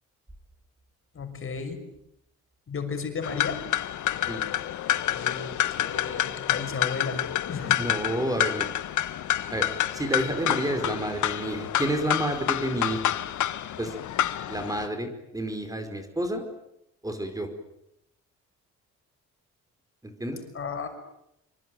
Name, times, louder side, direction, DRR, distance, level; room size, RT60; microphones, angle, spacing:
voice 1, 1.1-1.8 2.7-3.6 5.1-5.5 5.8-7.2 7.5-7.8 20.5-20.9, left 5 dB, 45° left, 6 dB, 6.3 m, -33 dB
sound 1, 3.2-14.9, left 12 dB, 75° left, 1.5 m, -28 dB
voice 2, 7.8-8.7 9.5-9.7 9.9-13.0 13.8-13.9 14.5-16.4 17.0-17.5 20.0-20.4, right 1 dB, 10° right, 7 dB, 4.9 m, -29 dB
25.5 x 24.0 x 9.3 m, 0.82 s
cardioid pair, 90°, 30 cm